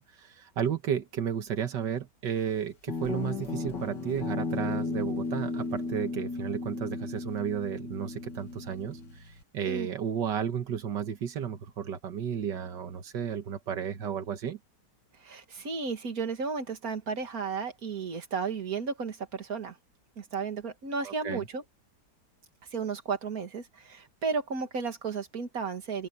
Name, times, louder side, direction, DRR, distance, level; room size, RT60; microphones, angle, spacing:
voice 1, 0.0-14.6 21.0-21.5, right 8 dB, 85° right, 2.0 m, -33 dB
Guitar, 2.9-9.4, left 3 dB, 80° left, 3.1 m, -35 dB
voice 2, 15.2-19.8 20.2-21.6 22.7-26.1, right 5 dB, 55° right, 2.6 m, -33 dB
open air
omnidirectional pair, 1.9 m